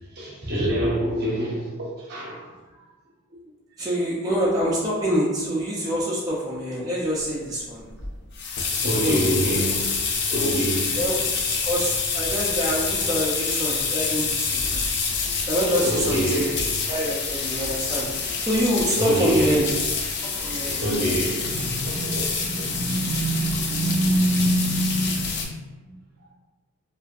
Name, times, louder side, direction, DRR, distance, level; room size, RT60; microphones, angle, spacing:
voice 1, 0.2-1.7 2.0-2.5 8.8-9.9 10.3-11.1 15.8-16.7 19.0-19.9 20.5-25.5 25.8-26.0, right 1 dB, 55° right, -3 dB, 0.6 m, -25 dB
voice 2, 3.8-7.9 9.0-9.3 10.3-10.6 11.0-11.2 11.6-14.7 15.5-16.5 16.9-18.1 18.4-19.7 20.2-20.8, equal, 20° right, -6 dB, 0.3 m, -25 dB
sound 1, 8.0-25.4, left 5 dB, 55° left, 0.4 m, -27 dB
2.5 x 2.3 x 2.2 m, 1.2 s
head